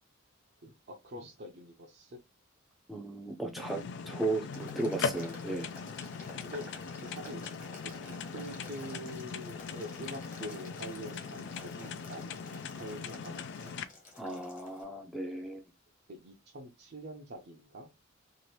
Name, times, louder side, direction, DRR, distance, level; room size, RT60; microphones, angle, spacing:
voice 1, 0.6-2.2 4.0-4.2 4.7-4.8 5.4-5.5 6.4-6.6 7.0-7.4 7.8-13.8 16.1-17.9, equal, 50° right, 0.5 m, -45 dB
voice 2, 2.9-5.7 14.2-15.6, right 2 dB, ahead, 0.5 m, -35 dB
sound 1, 3.6-13.8, left 5 dB, 60° left, 0.3 m, -40 dB
Boiling, 4.5-14.8, left 2 dB, 40° left, 1.3 m, -51 dB
2.9 x 2.5 x 3.1 m
head